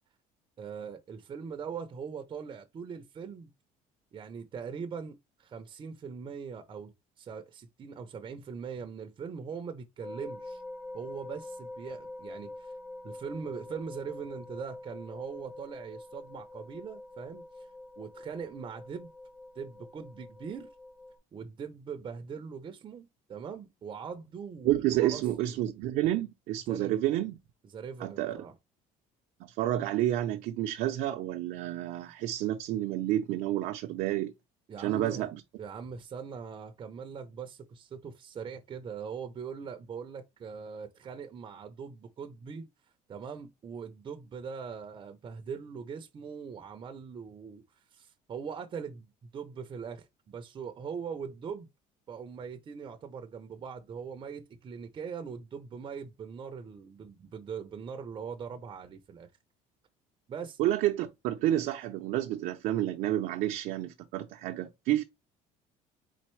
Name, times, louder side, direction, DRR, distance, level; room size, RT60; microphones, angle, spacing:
voice 1, 0.6-3.5 4.1-10.6 10.9-12.7 13.0-17.7 18.0-19.1 19.5-20.7 21.3-25.3 26.7-26.9 27.6-28.5 34.7-35.3 35.6-42.7 43.1-51.7 52.1-59.3 60.3-60.6, right 6 dB, 35° right, 0.6 m, -41 dB
sound 1, 10.0-21.2, left 2 dB, 65° left, 2.2 m, -45 dB
voice 2, 24.6-27.4 28.0-28.4 29.4-34.3 34.8-35.4 60.6-65.0, right 13 dB, 70° right, 0.6 m, -30 dB
4.2 x 3.9 x 3.1 m
cardioid pair, 120°, 15 cm